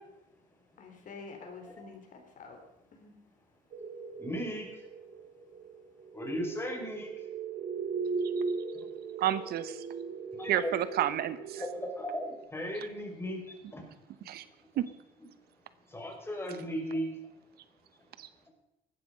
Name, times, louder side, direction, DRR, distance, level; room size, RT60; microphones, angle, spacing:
voice 1, 0.8-2.6 2.9-3.1, left 4 dB, 50° left, 3 dB, 4.1 m, -48 dB
sound 1, 3.7-12.4, right 5 dB, 50° right, 2.4 m, -38 dB
voice 2, 4.2-4.7 6.1-7.1 10.4-10.7 11.5-12.3 12.5-13.4 13.7-13.8 15.9-17.1, equal, 15° left, 0 dB, 5.5 m, -36 dB
voice 3, 9.2-9.9 10.5-11.6 14.3-14.4 14.8-14.9 18.2-18.3, right 12 dB, 70° right, 14 dB, 1.0 m, -30 dB
16.0 x 13.0 x 5.3 m, 0.89 s
cardioid pair, 110°, 17 cm